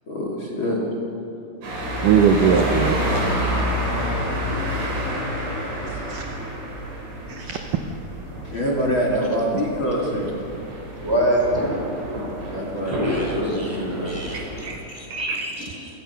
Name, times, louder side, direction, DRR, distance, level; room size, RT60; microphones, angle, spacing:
voice 1, 0.1-0.8 8.4-10.3 12.5-14.2 15.3-15.4, equal, 35° left, -2 dB, 2.8 m, -25 dB
sound 1, 1.6-14.7, equal, 90° right, 6.9 m, -28 dB
voice 2, 2.0-3.2 6.1-6.2 7.5-7.6 14.3-14.8 15.1-15.5, right 7 dB, 70° right, 5 dB, 2.1 m, -20 dB
voice 3, 11.0-11.7 12.9-15.9, right 1 dB, 5° right, -2 dB, 3.9 m, -27 dB
27.5 x 16.5 x 5.8 m, 2.9 s
omnidirectional pair, 4.7 m